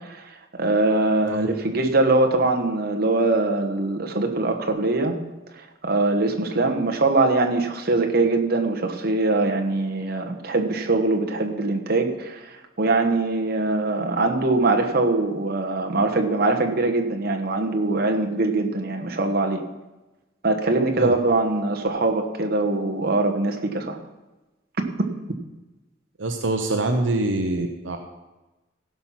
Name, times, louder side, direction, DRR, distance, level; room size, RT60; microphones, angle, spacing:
voice 1, 0.0-5.2 5.6-19.6 20.4-24.0, right 2 dB, 55° right, 3 dB, 1.3 m, -22 dB
voice 2, 26.2-28.0, right 2 dB, 75° right, 4 dB, 0.9 m, -24 dB
16.0 x 5.8 x 5.8 m, 1.1 s
head